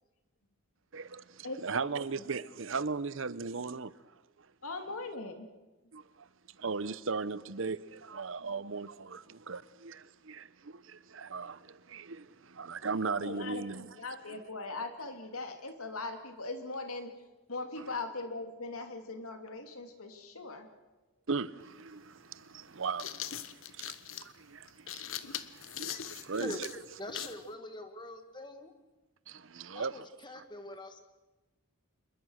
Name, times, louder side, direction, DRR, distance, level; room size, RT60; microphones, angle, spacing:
voice 1, 0.9-4.0 4.4-4.5 5.9-14.0 14.3-14.4 17.8-18.0 21.3-26.6 29.3-30.0 30.3-30.4, right 4 dB, 60° right, 0.8 m, -38 dB
voice 2, 1.4-1.9 2.2-2.3 4.6-5.5 13.0-17.1 17.5-20.7, left 3 dB, 80° left, 2.7 m, -40 dB
sound 1, 21.6-21.7 22.7-27.4, left 10 dB, 65° left, 1.0 m, -41 dB
voice 3, 27.0-28.7 29.7-31.0, left 1 dB, 20° left, 1.8 m, -43 dB
27.0 x 21.5 x 6.5 m
head